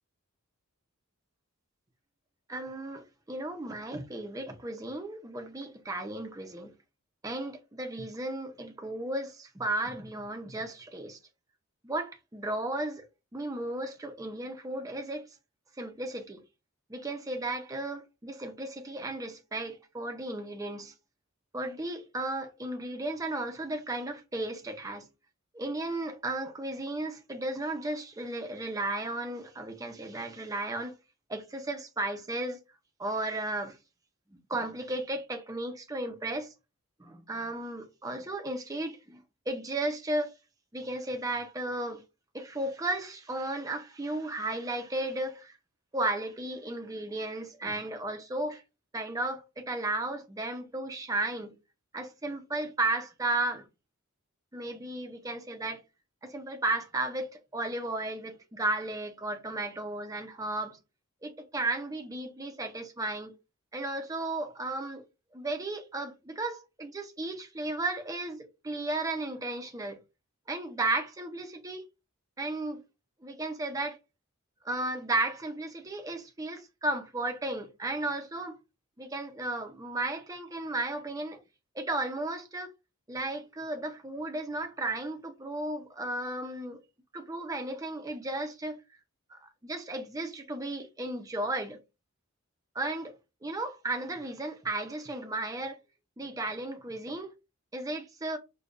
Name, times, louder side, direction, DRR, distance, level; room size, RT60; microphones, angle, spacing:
voice 1, 2.5-6.7 7.2-11.2 11.8-13.0 13.3-15.3 15.8-16.4 16.9-20.9 21.5-25.1 25.5-30.9 31.3-32.6 33.0-33.8 34.5-36.5 37.0-40.3 40.7-42.0 42.3-45.6 45.9-48.6 48.9-51.6 51.9-53.7 54.5-55.8 56.2-60.8 61.2-63.3 63.7-65.0 65.3-70.0 70.5-71.8 72.4-72.8 73.2-74.0 74.6-78.6 79.0-81.4 81.7-82.7 83.1-86.8 87.1-88.8 89.3-91.8 92.7-93.1 93.4-95.8 96.2-97.3 97.7-98.4, right 2 dB, 15° right, 0.5 m, -34 dB
5.0 x 2.2 x 2.5 m
head